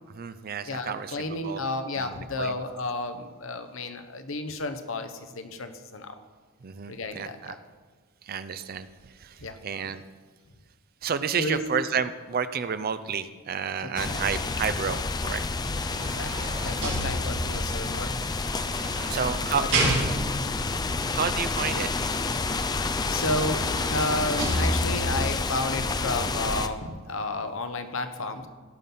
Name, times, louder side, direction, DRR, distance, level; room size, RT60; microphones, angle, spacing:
voice 1, 0.1-1.6 2.0-2.6 6.6-7.5 8.3-8.9 9.2-9.3 9.6-10.0 11.0-15.4 19.1-19.6 21.1-21.9, right 6 dB, 45° right, 12 dB, 0.5 m, -30 dB
voice 2, 0.7-6.2 6.9-7.6 9.4-9.6 11.3-11.6 13.8-14.4 16.0-18.2 19.8-20.0 23.1-28.5, left 2 dB, 65° left, 8 dB, 0.9 m, -32 dB
sound 1, 14.0-26.7, left 3 dB, 20° left, 0.4 m, -29 dB
sound 2, 15.7-17.7 18.5-20.5 22.8-22.9 23.2-25.2 25.8-25.9, right 1 dB, 60° right, 4.3 m, -30 dB
17.0 x 5.8 x 5.5 m, 1.5 s
head